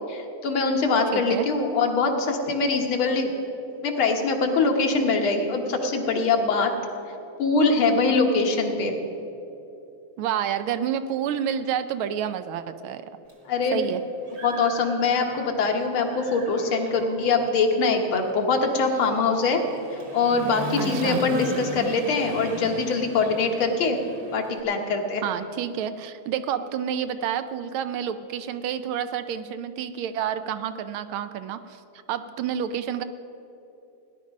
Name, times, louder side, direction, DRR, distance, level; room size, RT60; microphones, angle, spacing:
voice 1, 0.1-3.3 3.8-6.7 7.4-8.9 13.5-13.8 14.4-19.6 19.9-24.0 24.3-25.3, left 4 dB, 75° left, 3 dB, 2.0 m, -23 dB
voice 2, 1.1-1.5 10.2-13.1 13.7-14.0 20.8-21.2 25.2-31.8 32.1-33.0, right 9 dB, 75° right, 11 dB, 1.4 m, -29 dB
Human voice / Motorcycle, 13.3-13.4 13.9-15.7 16.0-24.6, right 1 dB, 50° right, 2.0 m, -37 dB
16.5 x 10.5 x 5.2 m, 3.0 s
omnidirectional pair, 2.4 m